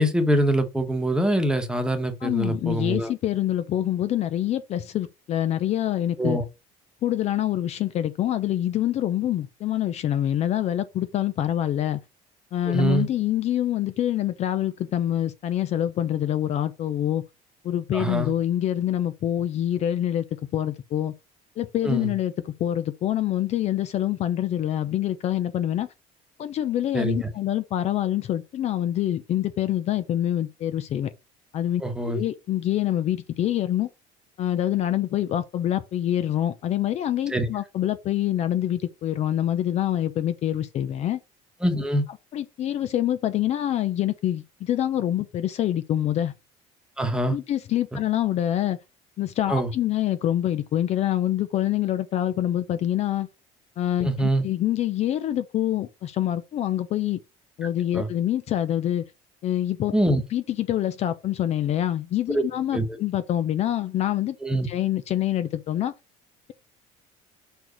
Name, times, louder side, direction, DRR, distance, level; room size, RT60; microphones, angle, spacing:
voice 1, 0.0-3.1 6.2-6.4 12.7-13.1 17.9-18.3 21.8-22.1 26.9-27.3 31.8-32.2 37.3-37.5 41.6-42.0 47.0-47.3 49.5-49.7 54.0-54.4 57.9-58.1 59.9-60.2 62.3-62.4 62.7-62.8 64.4-64.7, right 1 dB, 5° right, 1.3 m, -24 dB
voice 2, 2.2-6.4 7.0-12.0 12.5-17.2 17.6-20.2 20.5-21.1 21.6-25.9 26.4-31.1 31.5-33.9 34.4-41.2 42.3-46.3 47.3-48.8 49.2-53.3 53.8-57.2 57.6-59.0 59.4-59.9 60.3-64.4 64.7-65.9, left 12 dB, 45° left, 0.7 m, -26 dB
6.1 x 4.5 x 5.1 m
cardioid pair, 140°, 15 cm